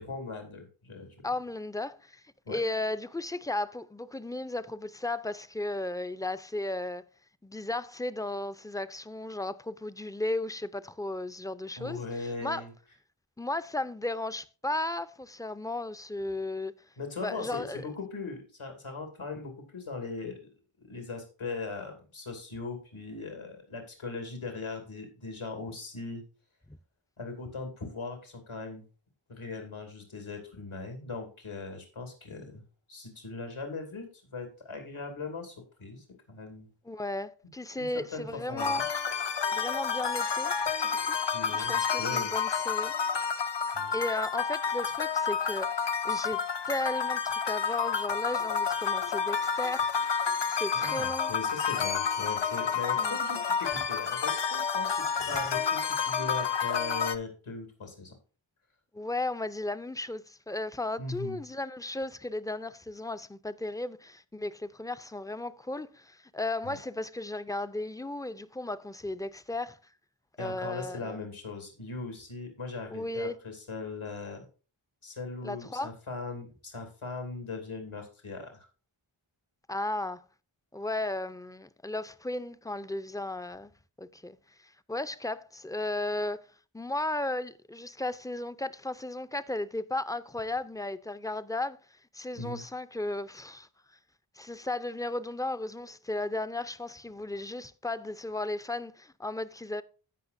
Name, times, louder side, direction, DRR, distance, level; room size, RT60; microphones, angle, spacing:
voice 1, 0.0-1.2 2.4-2.6 11.8-12.7 17.0-20.4 20.8-26.2 27.2-28.8 29.3-32.6 32.9-36.7 37.8-38.8 41.3-42.3 43.7-43.9 50.7-58.1 61.0-61.4 66.6-66.8 70.4-74.5 75.0-78.7 92.3-92.6, left 3 dB, 85° left, 2.5 m, -39 dB
voice 2, 1.2-7.0 7.4-12.6 13.4-16.7 17.2-17.9 26.7-26.8 36.9-38.8 39.5-40.6 40.8-41.2 41.5-42.9 43.9-46.4 46.7-50.2 50.5-51.3 53.0-53.2 58.9-69.8 70.4-71.2 72.9-73.4 75.4-75.9 79.7-80.2 80.7-83.7 84.0-84.4 84.6-91.8 92.1-93.7 94.4-99.8, left 2 dB, 10° left, 0.5 m, -35 dB
sound 1, 38.6-57.2, left 6 dB, 60° left, 0.7 m, -30 dB
16.0 x 5.7 x 2.6 m
wide cardioid pair, 60°, 48 cm